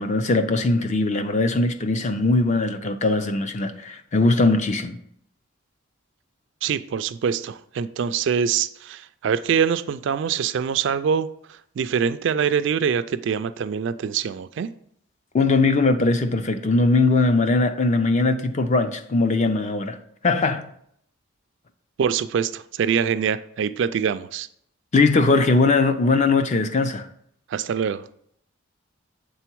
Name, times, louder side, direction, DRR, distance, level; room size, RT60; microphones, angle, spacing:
voice 1, 0.0-5.0 15.3-20.0 20.2-20.7 24.9-27.1, left 3 dB, 35° left, 0.4 m, -20 dB
voice 2, 6.6-11.3 11.8-14.7 22.0-24.5 27.5-28.1, right 7 dB, 60° right, 0.3 m, -24 dB
6.9 x 3.8 x 4.5 m
head